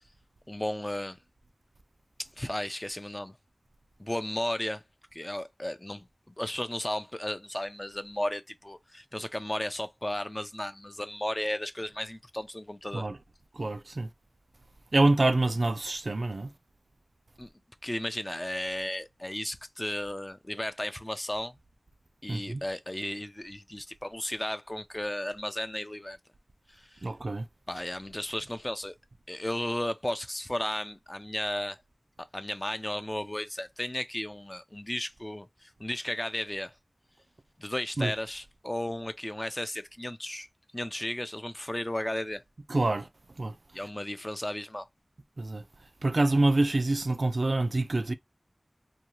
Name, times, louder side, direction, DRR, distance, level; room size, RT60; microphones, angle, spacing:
voice 1, 0.5-1.2 2.4-3.4 4.0-4.8 5.1-13.1 17.4-17.5 17.8-21.6 22.2-26.2 26.7-27.1 27.7-29.0 29.3-31.8 32.3-36.7 37.6-40.5 40.7-42.4 43.7-44.9, left 1 dB, 25° left, 0.4 m, -34 dB
voice 2, 13.5-14.1 14.9-16.5 22.3-22.6 27.0-27.4 38.0-38.1 42.7-43.1 43.4-43.6 45.4-45.6 46.0-48.1, right 2 dB, 75° right, 0.3 m, -26 dB
2.7 x 2.2 x 3.0 m
wide cardioid pair, 45°, 0 cm